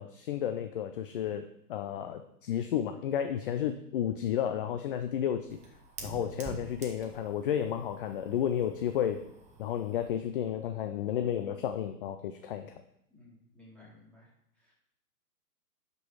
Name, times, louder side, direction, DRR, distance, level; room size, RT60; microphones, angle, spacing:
voice 1, 0.0-5.6 6.0-9.2 9.6-12.7, left 9 dB, 35° left, 8 dB, 0.5 m, -32 dB
Fire, 4.0-10.2, right 3 dB, 15° right, 1.0 m, -48 dB
voice 2, 13.1-14.7, left 2 dB, ahead, -7 dB, 3.4 m, -57 dB
12.0 x 5.4 x 4.7 m, 0.76 s
figure-of-eight pair, 120°, 48 cm